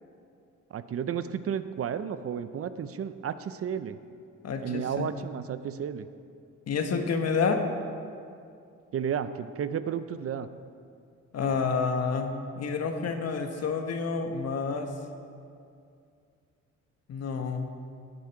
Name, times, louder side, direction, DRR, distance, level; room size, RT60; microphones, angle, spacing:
voice 1, 0.7-4.0 4.6-6.1 8.9-10.5, right 8 dB, 50° right, 12 dB, 0.6 m, -32 dB
voice 2, 4.4-5.1 6.7-7.6 11.3-14.9 17.1-17.7, left 5 dB, 55° left, 5 dB, 1.4 m, -29 dB
17.5 x 8.5 x 4.7 m, 2.4 s
cardioid pair, 90°, 30 cm